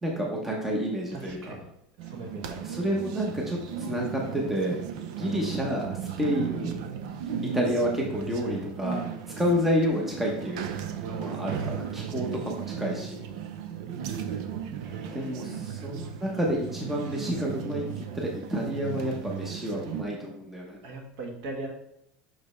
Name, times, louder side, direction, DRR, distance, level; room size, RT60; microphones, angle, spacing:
voice 1, 0.0-1.5 2.6-4.8 5.0-6.8 7.5-10.7 11.1-13.2 15.1-20.8, equal, 5° right, -1 dB, 0.7 m, -29 dB
voice 2, 1.1-1.7 2.0-2.7 14.8-15.7 20.8-21.7, right 2 dB, 55° right, 2 dB, 1.3 m, -40 dB
sound 1, 2.0-20.0, right 8 dB, 75° right, 0.6 m, -36 dB
5.9 x 5.1 x 3.2 m, 0.78 s
cardioid pair, 170°, 3 cm